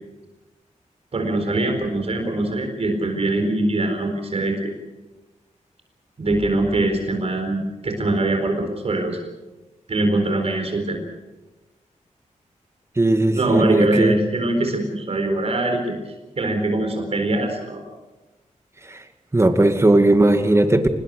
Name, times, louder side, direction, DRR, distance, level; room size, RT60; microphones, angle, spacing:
voice 1, 1.1-4.7 6.2-9.2 9.9-11.0 13.3-17.8, right 2 dB, 50° right, 4 dB, 4.2 m, -23 dB
voice 2, 13.0-14.2 18.9-19.0 19.3-20.9, right 2 dB, 20° right, 7 dB, 2.1 m, -17 dB
25.5 x 20.5 x 6.7 m, 1.1 s
wide cardioid pair, 110°, 13 cm